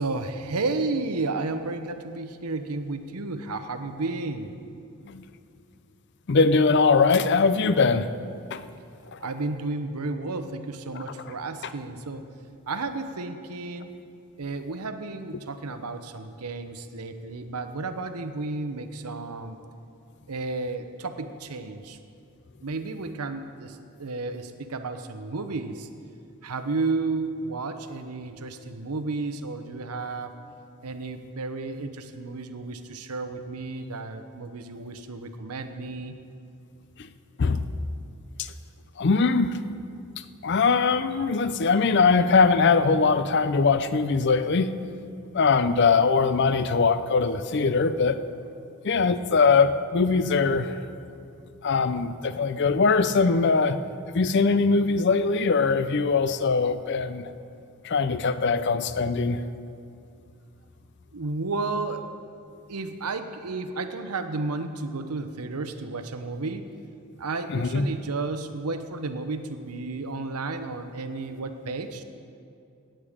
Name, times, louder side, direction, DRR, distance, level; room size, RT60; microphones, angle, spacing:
voice 1, 0.0-4.5 9.2-12.2 12.7-13.9 14.4-19.6 20.3-22.0 22.6-25.9 26.4-30.4 30.8-36.1 61.1-62.0 62.7-66.6 67.2-72.0, right 3 dB, 85° right, 8 dB, 0.8 m, -32 dB
voice 2, 6.3-8.1 8.5-8.6 9.1-9.2 10.9-11.0 37.4-37.6 38.4-38.5 39.0-39.6 40.4-44.7 45.3-48.2 48.8-50.8 51.6-53.8 54.1-57.3 57.8-59.4 67.5-67.9, left 4 dB, 50° left, 12 dB, 0.5 m, -21 dB
17.0 x 8.9 x 5.0 m, 2.5 s
head